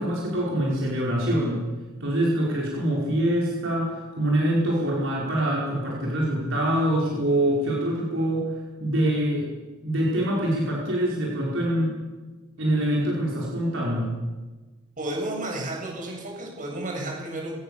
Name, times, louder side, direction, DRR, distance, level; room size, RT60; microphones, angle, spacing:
voice 1, 0.0-1.7 2.0-9.5 9.8-12.0 12.6-14.1, right 1 dB, 65° right, -4 dB, 5.3 m, -25 dB
voice 2, 15.0-17.5, right 1 dB, 40° right, 0 dB, 7.8 m, -32 dB
25.5 x 19.0 x 7.0 m, 1.2 s
head